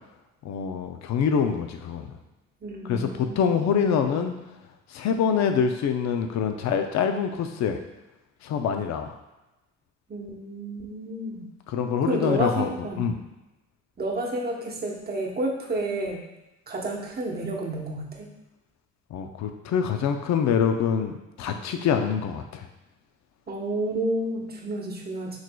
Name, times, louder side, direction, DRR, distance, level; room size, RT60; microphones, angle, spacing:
voice 1, 0.4-2.1 2.9-4.3 4.9-7.8 8.4-9.1 11.7-12.7 13.0-13.2 19.1-22.7, left 7 dB, 65° left, 6 dB, 0.5 m, -25 dB
voice 2, 2.6-3.5 4.0-4.4 10.1-11.5 12.0-13.1 14.0-16.2 16.7-18.3 23.5-25.4, right 1 dB, 30° right, -1 dB, 1.0 m, -30 dB
6.3 x 3.1 x 2.3 m, 1.0 s
cardioid pair, 90°, 30 cm